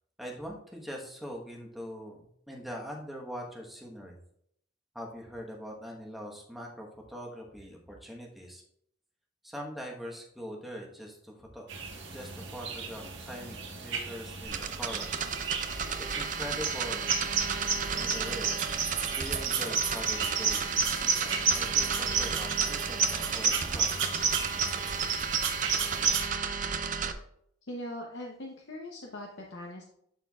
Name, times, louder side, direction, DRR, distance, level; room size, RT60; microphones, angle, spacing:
voice 1, 0.2-4.2 4.9-8.6 9.4-11.7 12.1-15.2 16.0-17.1 17.9-18.6 19.1-24.0, equal, ahead, -1 dB, 1.1 m, -42 dB
sound 1, 11.7-26.2, right 5 dB, 65° right, 1.4 m, -32 dB
sound 2, 14.5-27.1, right 6 dB, 40° right, 0.5 m, -33 dB
voice 2, 27.7-29.8, left 1 dB, 65° left, 0 dB, 0.8 m, -41 dB
11.5 x 4.4 x 2.4 m, 0.71 s
head